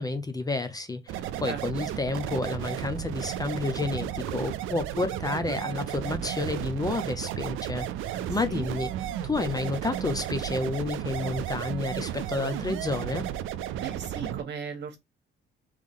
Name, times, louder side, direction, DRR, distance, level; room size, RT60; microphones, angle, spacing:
voice 1, 0.0-7.9 8.3-8.9 9.2-13.3, left 3 dB, 20° left, 0.6 m, -30 dB
sound 1, 1.1-14.4, right 11 dB, 90° right, 0.4 m, -33 dB
voice 2, 8.1-8.7 13.8-15.0, right 6 dB, 60° right, 1.4 m, -37 dB
3.6 x 3.2 x 3.7 m
cardioid pair, 90°, 20 cm